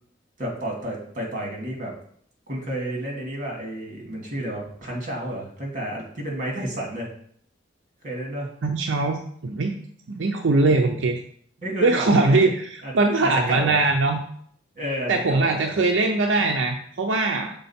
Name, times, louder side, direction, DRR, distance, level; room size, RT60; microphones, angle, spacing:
voice 1, 0.4-1.9 2.5-7.1 8.0-8.5 11.6-12.4 12.8-12.9 13.2-13.8 14.8-15.8, right 1 dB, 45° right, -1 dB, 2.0 m, -31 dB
voice 2, 8.6-9.7 10.1-11.2 11.8-14.2 15.1-17.5, right 3 dB, 80° right, 3 dB, 0.6 m, -21 dB
6.7 x 3.8 x 4.2 m, 0.62 s
head